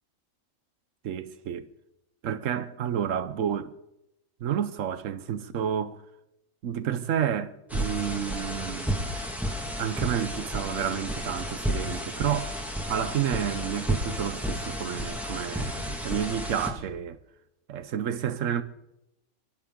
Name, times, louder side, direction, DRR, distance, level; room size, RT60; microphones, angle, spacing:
voice 1, 1.0-1.7 2.2-3.7 4.4-6.0 6.6-9.2 9.8-12.6 12.9-17.2 17.7-18.6, right 9 dB, 70° right, 1.1 m, -30 dB
sound 1, 7.7-16.7, equal, ahead, 1.8 m, -32 dB
26.0 x 11.5 x 3.8 m
omnidirectional pair, 1.5 m